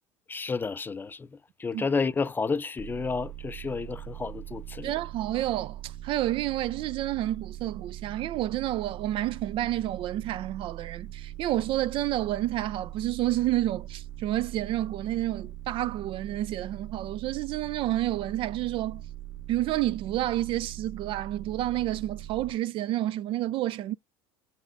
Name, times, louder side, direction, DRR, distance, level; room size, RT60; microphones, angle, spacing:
voice 1, 0.3-1.3 1.6-4.9, left 4 dB, 15° left, 0.4 m, -30 dB
sound 1, 2.8-22.5, right 13 dB, 15° right, 0.7 m, -41 dB
voice 2, 4.8-19.0 19.5-23.9, right 14 dB, 45° right, 0.4 m, -29 dB
7.1 x 5.4 x 2.5 m
supercardioid pair, 125°, 12 cm